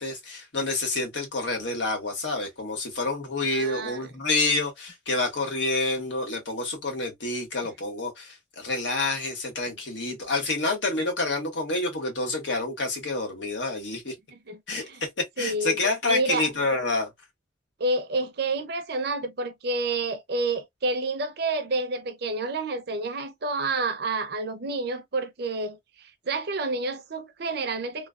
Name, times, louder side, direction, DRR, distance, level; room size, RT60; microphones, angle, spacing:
voice 1, 0.0-14.1 14.7-17.1, left 2 dB, 80° left, 1.4 m, -28 dB
voice 2, 3.5-4.1 14.3-15.0 15.4-15.8 16.0-16.5 17.8-28.1, right 2 dB, 60° right, 0.6 m, -29 dB
3.1 x 2.1 x 2.4 m
head